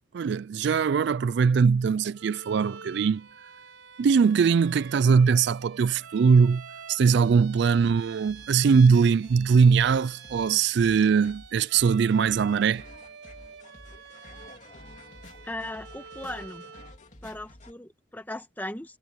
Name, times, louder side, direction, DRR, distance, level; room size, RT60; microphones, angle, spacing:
voice 1, 0.1-3.3 4.0-6.6 6.9-12.8, right 5 dB, 60° right, 0.3 m, -21 dB
Bowed string instrument, 2.1-17.0, right 6 dB, 80° right, 5.3 m, -47 dB
sound 1, 7.2-17.7, left 1 dB, 40° left, 2.7 m, -51 dB
voice 2, 15.4-16.7 17.2-19.0, left 1 dB, 10° left, 1.4 m, -38 dB
head